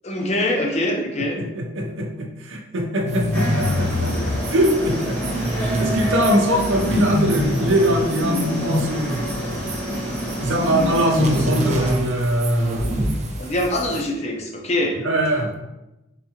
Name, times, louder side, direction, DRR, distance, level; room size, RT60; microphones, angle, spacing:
voice 1, 0.0-1.4 13.4-15.0, left 1 dB, 35° left, 1 dB, 0.5 m, -23 dB
voice 2, 1.2-4.1 4.5-5.4 5.8-9.2 10.4-13.1 15.0-15.5, right 1 dB, 85° right, 2 dB, 0.6 m, -22 dB
sound 1, 3.0-4.4 6.7-7.8 8.2-8.9 10.6-11.8, left 2 dB, 80° left, 0.5 m, -24 dB
sound 2, 3.1-14.0, right 2 dB, 35° right, 0.6 m, -30 dB
sound 3, 3.3-11.9, left 1 dB, 10° left, 0.8 m, -28 dB
3.6 x 3.6 x 2.8 m, 0.97 s
head